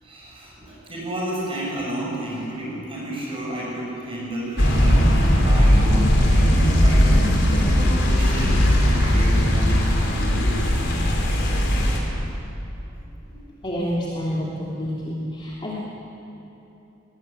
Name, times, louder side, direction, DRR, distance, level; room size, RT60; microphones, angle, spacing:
voice 1, 0.0-10.6 13.3-13.5 14.4-14.9, right 1 dB, 25° right, -4 dB, 7.2 m, -32 dB
sound 1, 4.6-12.0, equal, 60° left, 4.1 m, -18 dB
voice 2, 13.6-15.7, equal, 25° left, -6 dB, 3.1 m, -28 dB
22.5 x 19.5 x 8.7 m, 2.9 s
head